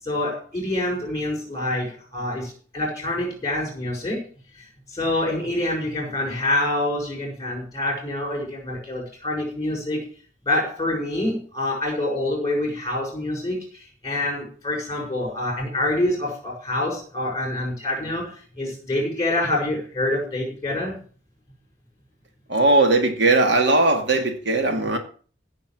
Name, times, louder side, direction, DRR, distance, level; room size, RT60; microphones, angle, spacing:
voice 1, 0.0-4.2 4.9-10.0 10.5-21.0, left 1 dB, 20° left, 6.0 m, -26 dB
voice 2, 22.5-25.0, right 2 dB, 60° right, 2.1 m, -19 dB
16.0 x 5.9 x 7.6 m
head